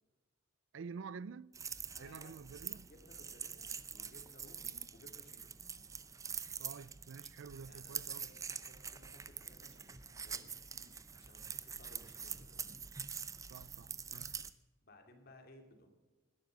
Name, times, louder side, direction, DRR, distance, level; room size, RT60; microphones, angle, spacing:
voice 1, 0.7-1.6 2.0-2.9 6.6-8.3 13.5-14.4, right 5 dB, 65° right, 0.4 m, -49 dB
sound 1, 1.5-14.5, right 6 dB, 15° right, 0.6 m, -45 dB
voice 2, 1.9-2.3 2.9-5.5 7.6-10.0 10.2-12.8 14.8-15.9, left 1 dB, 45° left, 2.8 m, -61 dB
20.5 x 11.5 x 5.3 m
head